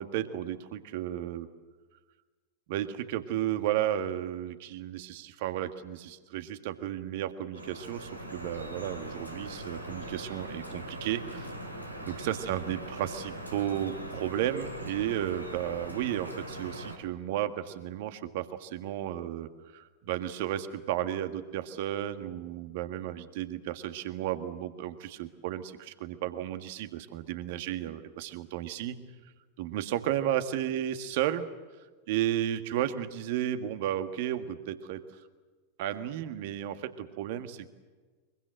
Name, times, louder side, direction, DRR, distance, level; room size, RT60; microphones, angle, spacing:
voice 1, 0.0-1.5 2.7-11.5 12.1-29.0 29.6-31.5 32.1-35.2 35.8-37.7, right 12 dB, 50° right, 9 dB, 1.7 m, -33 dB
Drip, 7.5-17.0, right 1 dB, 90° right, 2.9 m, -41 dB
24.0 x 23.0 x 7.8 m, 1.4 s
figure-of-eight pair, 90°, 0 cm